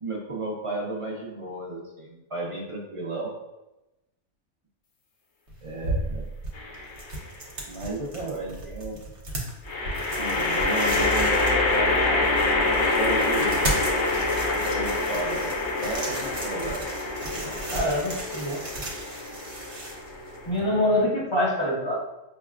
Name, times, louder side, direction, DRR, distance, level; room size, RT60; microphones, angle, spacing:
voice 1, 0.0-3.3 5.6-6.3 7.6-9.0 10.2-13.6 14.5-15.5 15.8-16.8 17.3-17.6 20.7-21.0, right 2 dB, 40° right, -3 dB, 0.5 m, -34 dB
sound 1, 5.5-20.6, right 2 dB, 65° right, 1.1 m, -35 dB
sound 2, 6.5-7.1 9.7-21.0, left 2 dB, 55° left, 0.6 m, -26 dB
voice 2, 17.7-18.6 20.5-21.9, left 1 dB, 25° left, -6 dB, 1.0 m, -25 dB
5.6 x 2.1 x 2.4 m, 0.96 s
omnidirectional pair, 1.3 m